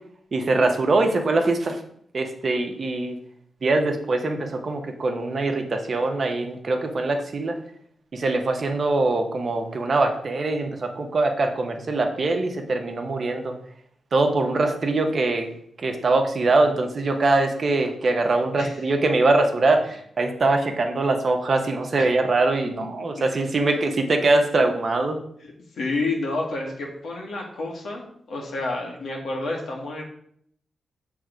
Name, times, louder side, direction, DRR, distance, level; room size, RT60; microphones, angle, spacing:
voice 1, 0.3-1.8 2.1-3.2 3.6-7.5 8.1-13.5 14.1-15.5 15.8-25.2, right 2 dB, 55° right, 4 dB, 1.1 m, -23 dB
voice 2, 25.4-30.0, left 2 dB, 75° left, -1 dB, 1.6 m, -30 dB
6.2 x 3.5 x 5.1 m, 0.66 s
cardioid pair, 50°, 0 cm